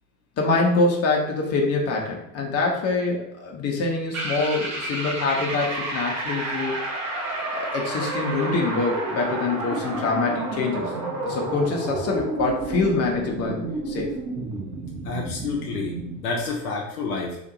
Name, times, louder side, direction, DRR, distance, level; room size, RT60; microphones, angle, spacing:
voice 1, 0.4-6.8 7.5-10.9 11.3-13.6 13.9-14.1, left 3 dB, 30° left, 0 dB, 0.9 m, -25 dB
sound 1, 4.1-16.2, right 2 dB, 35° right, 1.1 m, -30 dB
voice 2, 15.0-17.4, left 4 dB, 65° left, 0 dB, 0.7 m, -29 dB
2.9 x 2.5 x 3.9 m, 0.78 s
figure-of-eight pair, 65°, 48 cm